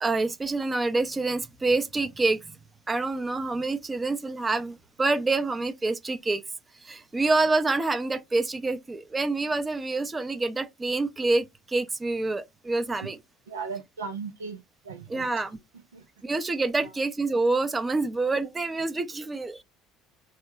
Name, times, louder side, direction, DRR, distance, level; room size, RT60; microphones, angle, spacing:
voice 1, 0.0-2.6 2.9-6.4 6.7-13.2 15.1-15.6 16.2-19.6, right 3 dB, 20° right, 0.6 m, -27 dB
voice 2, 13.5-15.3 15.9-16.1 16.8-16.9, right 5 dB, 80° right, 0.5 m, -37 dB
3.3 x 2.2 x 3.0 m
figure-of-eight pair, 60°, 0 cm